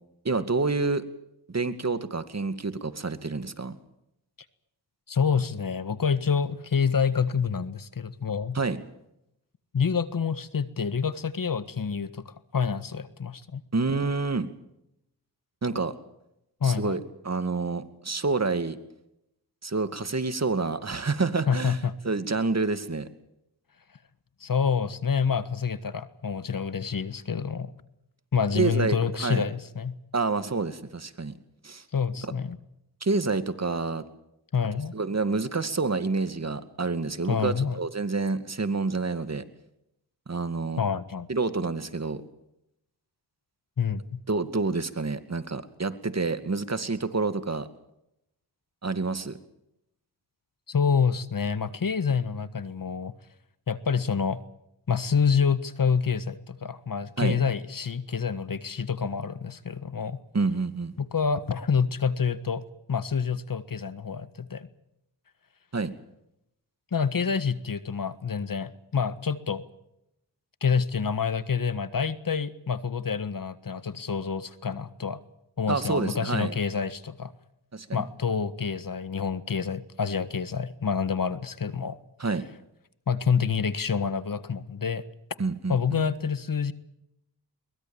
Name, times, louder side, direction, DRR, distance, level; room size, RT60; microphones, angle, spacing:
voice 1, 0.2-1.0 1.5-3.8 8.5-8.8 13.7-14.5 15.6-15.9 16.6-18.8 19.6-21.8 22.0-23.1 28.5-29.4 30.1-31.4 31.6-31.8 32.2-32.3 33.0-34.0 34.9-39.4 40.3-40.8 41.3-42.2 44.3-47.7 48.8-49.4 57.2-57.4 60.3-60.9 65.7-65.9 75.7-76.5 77.7-78.0 82.2-82.5 85.4-86.0, right 3 dB, 40° right, 11 dB, 2.3 m, -28 dB
voice 2, 5.1-8.6 9.7-13.6 16.6-17.0 21.5-21.9 24.4-27.7 28.3-30.0 31.9-32.6 34.5-34.9 37.3-37.8 40.8-41.3 43.8-44.2 50.7-53.1 53.7-54.4 54.9-60.2 61.0-62.6 62.9-64.7 66.9-69.6 70.6-75.2 75.6-77.3 77.9-82.0 83.1-85.0 85.7-86.7, left 6 dB, 50° left, 14 dB, 1.6 m, -27 dB
23.0 x 20.0 x 7.3 m, 0.82 s
cardioid pair, 50°, 41 cm